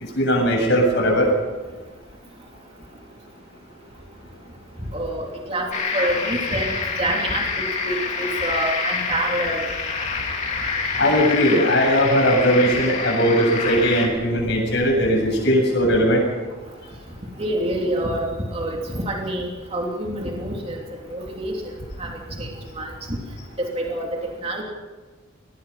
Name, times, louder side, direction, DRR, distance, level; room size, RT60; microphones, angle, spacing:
voice 1, 0.1-1.3 11.0-16.2, equal, 55° left, 0 dB, 7.8 m, -19 dB
voice 2, 4.9-9.6 17.4-20.8 21.1-21.5 22.0-23.2 23.6-24.1 24.4-24.6, right 1 dB, 30° right, 0 dB, 3.0 m, -27 dB
sound 1, 5.7-14.1, left 4 dB, 35° left, 3.0 m, -27 dB
24.5 x 19.0 x 5.8 m, 1.3 s
head